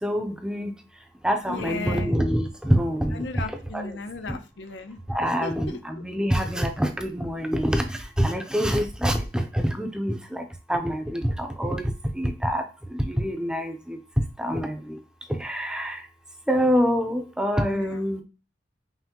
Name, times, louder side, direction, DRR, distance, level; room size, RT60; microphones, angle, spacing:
voice 1, 0.0-0.7 1.2-3.3 3.7-3.8 5.1-7.8 8.2-10.4 10.7-11.9 12.2-12.6 13.1-14.0 14.4-15.0 15.4-16.0 16.5-18.2, equal, 5° right, 0.5 m, -25 dB
voice 2, 1.5-2.2 3.1-5.0 5.4-6.0 17.7-18.0, left 3 dB, 85° left, 0.6 m, -35 dB
5.6 x 2.2 x 2.9 m
head